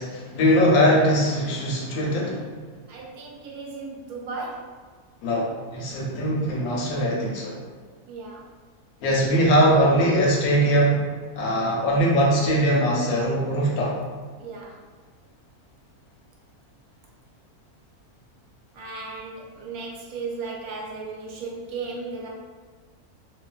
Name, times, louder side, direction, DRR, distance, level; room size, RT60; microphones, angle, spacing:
voice 1, 0.0-2.4 5.2-7.5 9.0-11.0 11.4-14.0, equal, 80° left, -3 dB, 1.1 m, -21 dB
voice 2, 2.9-4.8 8.1-8.5 14.4-14.8 18.7-22.3, right 4 dB, 80° right, -2 dB, 1.0 m, -35 dB
2.5 x 2.4 x 2.2 m, 1.5 s
omnidirectional pair, 1.6 m